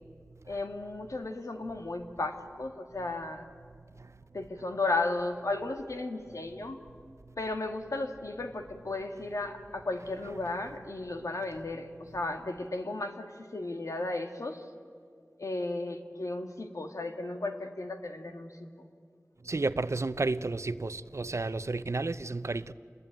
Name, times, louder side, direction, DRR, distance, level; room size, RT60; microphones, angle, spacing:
voice 1, 0.5-3.5 4.3-6.8 7.4-14.7 15.4-18.9, left 2 dB, 90° left, 1.9 m, -35 dB
voice 2, 19.4-22.7, right 3 dB, 65° right, 0.7 m, -32 dB
28.0 x 21.5 x 9.2 m
wide cardioid pair, 40°, 5 cm